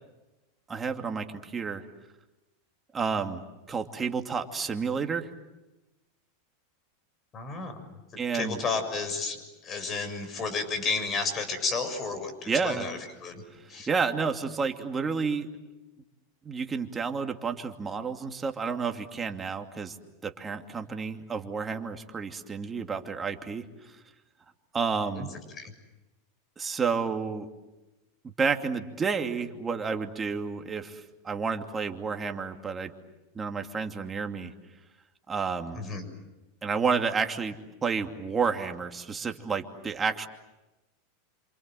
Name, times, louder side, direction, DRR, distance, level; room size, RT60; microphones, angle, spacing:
voice 1, 0.7-1.8 2.9-3.4 3.7-5.3 8.2-8.6 12.5-12.9 13.7-15.5 16.4-20.0 20.2-23.6 24.7-25.3 26.6-27.5 28.2-32.9 33.3-34.5 35.3-35.8 36.6-40.3, right 5 dB, 20° right, 5 dB, 2.7 m, -30 dB
voice 2, 7.3-7.7 8.3-9.4 9.6-13.4 13.7-13.9 25.1-25.3 25.6-25.7 35.7-36.1, left 4 dB, 35° left, 10 dB, 6.9 m, -32 dB
28.5 x 27.0 x 7.8 m, 1.1 s
hypercardioid pair, 105°, 0 cm